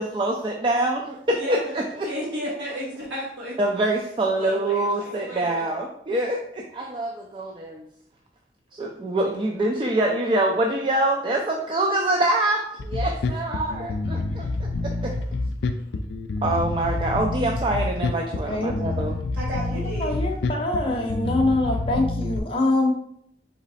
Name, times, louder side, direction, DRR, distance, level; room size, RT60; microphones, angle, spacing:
voice 1, 0.0-2.1 3.6-7.8 8.7-15.1 16.4-19.2, right 1 dB, 30° right, 1 dB, 0.3 m, -25 dB
voice 2, 2.0-3.6 4.3-5.7 19.4-20.2, equal, 80° right, -9 dB, 1.5 m, -33 dB
Bass guitar, 12.8-22.4, left 3 dB, 80° left, 0.4 m, -28 dB
voice 3, 20.0-22.9, left 2 dB, 30° left, 0 dB, 0.7 m, -24 dB
4.0 x 3.1 x 4.0 m, 0.73 s
head